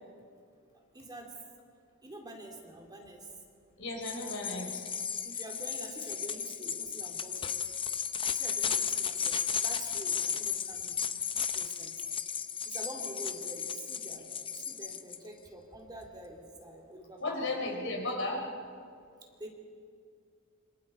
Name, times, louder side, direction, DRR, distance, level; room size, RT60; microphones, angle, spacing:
voice 1, 0.9-1.3 2.0-3.3 5.2-7.6 8.3-9.4 9.6-11.0 11.5-12.0 12.6-17.6 19.4-19.5, right 1 dB, 20° right, 0 dB, 2.7 m, -46 dB
voice 2, 3.8-4.8 17.2-18.5, left 2 dB, 60° left, 1 dB, 3.8 m, -34 dB
sound 1, 4.0-15.2, left 7 dB, 25° left, 0.7 m, -34 dB
26.5 x 25.5 x 4.3 m, 2.2 s
head